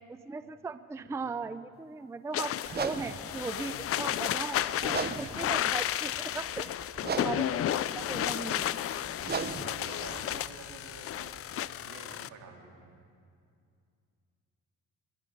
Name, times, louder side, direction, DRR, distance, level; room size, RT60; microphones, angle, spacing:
voice 1, 0.1-6.7 7.1-8.7, right 4 dB, 10° right, 13 dB, 0.4 m, -38 dB
voice 2, 1.1-1.5 2.6-2.8 3.3-3.7 4.8-5.2 7.6-8.7 9.2-11.3 11.8-13.0, right 4 dB, 80° right, 1 dB, 2.5 m, -49 dB
sound 1, 2.3-12.3, left 11 dB, 50° left, 0.4 m, -33 dB
sound 2, 2.7-11.4, right 5 dB, 35° right, 0.8 m, -40 dB
22.5 x 10.5 x 5.2 m, 2.4 s
cardioid pair, 90°, 30 cm